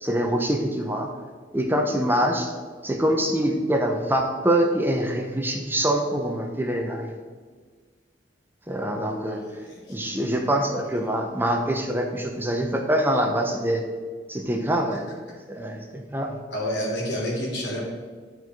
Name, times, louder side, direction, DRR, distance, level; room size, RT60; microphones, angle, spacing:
voice 1, 0.0-1.1 1.5-2.5 2.8-7.1 8.7-9.4 9.9-13.8 14.3-15.1 15.5-16.4, right 1 dB, 10° right, 3 dB, 0.7 m, -24 dB
voice 2, 9.3-10.0 10.8-11.0 16.5-17.8, equal, 70° left, -3 dB, 2.7 m, -30 dB
10.5 x 4.6 x 4.6 m, 1.5 s
head